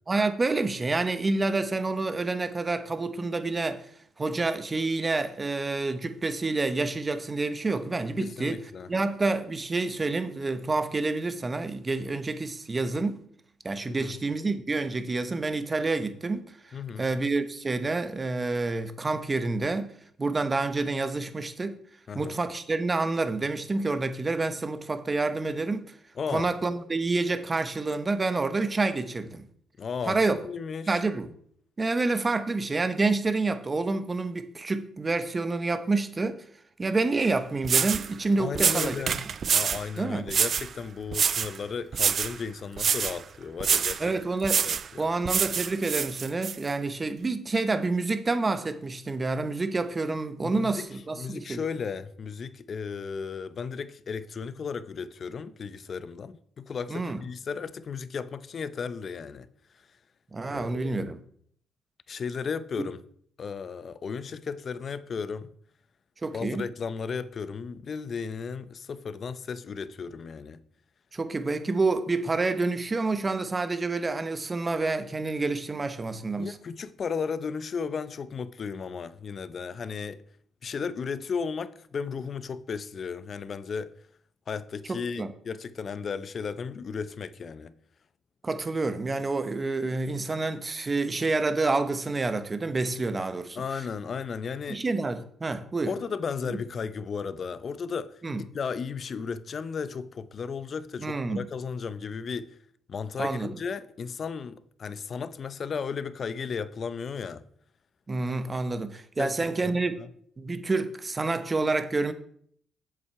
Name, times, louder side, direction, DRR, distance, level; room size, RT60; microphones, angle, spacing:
voice 1, 0.1-3.9 4.2-8.6 8.9-13.2 13.6-19.9 20.2-21.8 22.1-25.9 26.3-29.5 30.1-30.4 30.9-31.3 31.8-36.4 36.8-39.0 40.0-40.3 44.0-44.7 45.0-51.6 56.9-57.2 60.3-61.2 66.2-66.7 71.1-76.6 84.9-85.3 88.4-93.6 94.7-95.9 96.5-96.6 98.2-98.4 101.0-101.4 103.2-103.5 108.1-110.0 110.4-112.1, right 3 dB, 25° right, 0.9 m, -28 dB
voice 2, 8.2-8.9 13.9-14.2 16.7-17.1 22.1-22.4 26.2-26.5 29.8-31.0 38.4-39.3 39.5-44.1 44.6-45.1 50.4-50.9 51.2-59.5 60.5-61.0 62.1-63.0 63.4-65.5 66.3-70.6 76.4-80.2 80.6-83.9 84.5-87.7 93.6-94.8 95.9-98.2 98.5-102.6 102.9-107.5 109.2-109.4 109.6-110.1, left 6 dB, 50° left, 0.6 m, -35 dB
sound 1, 37.2-37.3 37.6-38.1 38.6-39.9 40.3-40.7 41.1-41.6 41.9-42.4 42.8-43.2 43.6-44.0 44.4-44.9 45.3-46.6, right 7 dB, 50° right, 0.4 m, -26 dB
7.6 x 7.2 x 4.7 m
cardioid pair, 90°, 0 cm